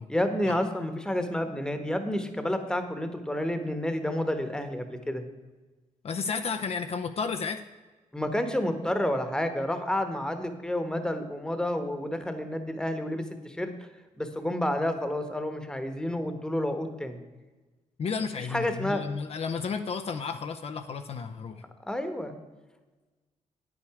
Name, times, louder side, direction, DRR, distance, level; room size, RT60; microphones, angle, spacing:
voice 1, 0.1-5.2 8.1-13.7 14.2-17.2 18.5-19.0 21.8-22.4, left 1 dB, 5° left, 7 dB, 1.1 m, -30 dB
voice 2, 6.0-7.6 18.0-21.6, left 5 dB, 50° left, 7 dB, 0.6 m, -32 dB
9.6 x 8.7 x 4.8 m, 1.2 s
cardioid pair, 110°, 13 cm